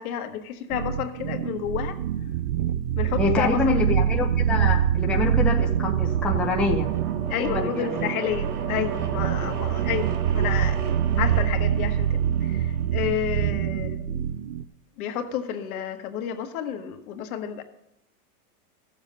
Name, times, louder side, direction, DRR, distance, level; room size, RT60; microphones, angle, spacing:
voice 1, 0.0-2.0 2.9-3.8 7.3-10.8 11.2-14.2 15.0-17.6, left 9 dB, 65° left, 1.4 m, -30 dB
sound 1, 0.7-14.6, right 10 dB, 50° right, 0.5 m, -25 dB
voice 2, 3.2-6.9 7.4-8.1 9.4-9.5, left 4 dB, ahead, 0.6 m, -26 dB
sound 2, 5.2-12.9, right 7 dB, 80° right, 1.7 m, -36 dB
14.0 x 7.4 x 5.4 m
supercardioid pair, 155°, 46 cm